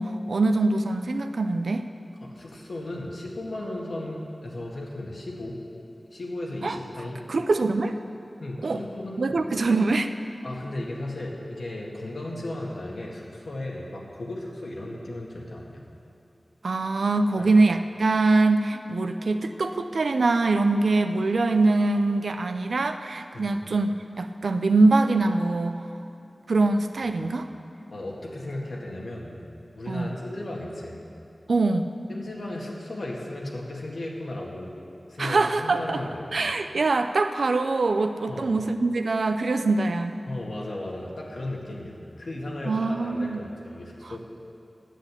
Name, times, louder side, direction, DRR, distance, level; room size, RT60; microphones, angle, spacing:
voice 1, 0.0-1.9 6.6-6.8 7.3-8.0 8.6-8.8 9.2-10.1 16.6-25.8 26.5-27.5 29.9-30.1 31.5-31.9 35.2-36.0 36.3-40.2 42.6-43.4 44.0-44.2, right 3 dB, 90° right, 8 dB, 0.5 m, -23 dB
voice 2, 2.2-5.6 6.1-7.2 8.4-9.4 10.4-15.8 17.3-17.5 23.3-23.6 27.9-29.4 29.8-31.0 32.1-34.8 35.1-36.3 38.3-38.5 40.3-44.2, left 1 dB, 85° left, -3 dB, 1.9 m, -35 dB
10.0 x 8.2 x 8.2 m, 2.7 s
wide cardioid pair, 50°, 0 cm